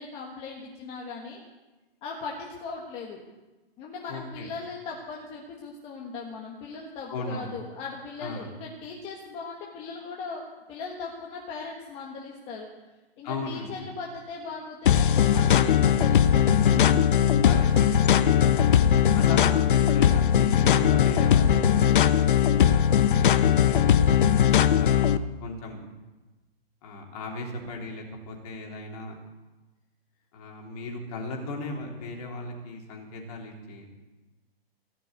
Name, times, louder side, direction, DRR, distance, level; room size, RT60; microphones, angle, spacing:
voice 1, 0.0-1.4 2.0-3.2 3.8-10.4 10.7-12.7 13.2-16.5 17.5-17.6, left 4 dB, 20° left, -1 dB, 1.5 m, -39 dB
voice 2, 4.1-4.5 7.1-7.6 8.2-8.5 13.2-13.9 16.6-17.1 17.4-18.8 19.1-23.8 24.7-25.1 25.4-25.8 26.8-29.2 30.3-33.9, left 2 dB, 40° left, 0 dB, 3.4 m, -36 dB
sound 1, 14.8-25.2, left 9 dB, 55° left, 0.8 m, -20 dB
17.0 x 6.7 x 9.4 m, 1.1 s
hypercardioid pair, 160°, 31 cm